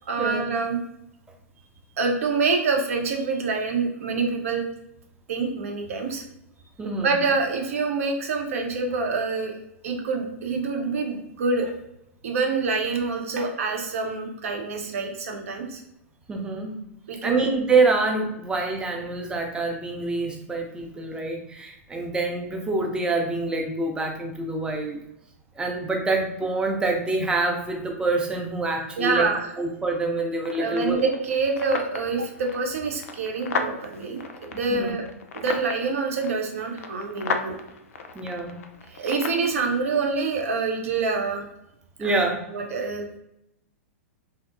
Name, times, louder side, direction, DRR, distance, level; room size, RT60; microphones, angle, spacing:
voice 1, 0.1-0.8 2.0-4.6 5.3-6.2 7.0-9.6 9.8-11.7 12.2-15.8 17.1-17.5 29.0-29.5 30.6-35.0 35.3-37.5 38.9-41.4 42.0-43.2, right 4 dB, 70° right, 2 dB, 0.7 m, -26 dB
voice 2, 6.8-7.1 16.3-16.8 17.2-25.0 25.6-29.3 29.6-31.0 34.7-34.9 35.5-35.6 38.1-38.6 42.0-42.4, right 3 dB, 10° right, 2 dB, 0.5 m, -26 dB
sound 1, 30.4-39.5, left 5 dB, 75° left, 0.4 m, -35 dB
2.8 x 2.1 x 2.4 m, 0.83 s
hypercardioid pair, 110°, 8 cm